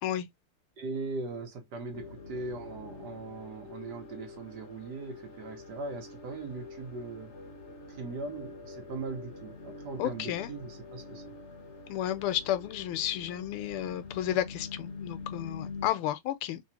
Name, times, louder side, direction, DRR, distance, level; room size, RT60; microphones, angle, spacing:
voice 1, 0.8-7.3 8.0-11.2, right 3 dB, 60° right, 1.4 m, -39 dB
sound 1, 1.9-15.9, left 4 dB, 55° left, 0.8 m, -45 dB
voice 2, 10.0-10.5 11.9-16.6, left 12 dB, 85° left, 1.5 m, -32 dB
3.5 x 3.0 x 2.8 m
omnidirectional pair, 2.4 m